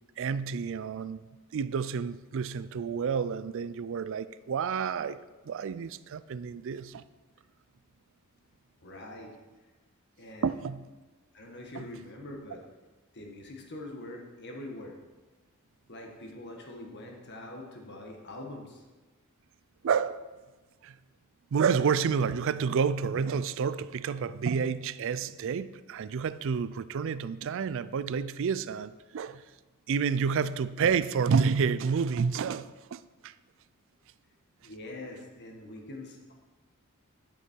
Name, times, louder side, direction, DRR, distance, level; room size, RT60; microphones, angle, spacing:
voice 1, 0.2-1.2 1.5-5.2 5.5-7.0 10.4-10.8 19.8-20.3 20.8-20.9 21.5-29.4 29.9-33.3, right 6 dB, 60° right, 0.4 m, -29 dB
voice 2, 8.8-9.3 10.2-10.6 11.3-12.6 13.1-15.0 15.9-18.8 34.6-36.3, left 1 dB, 50° left, 1.6 m, -44 dB
11.0 x 6.4 x 4.5 m
head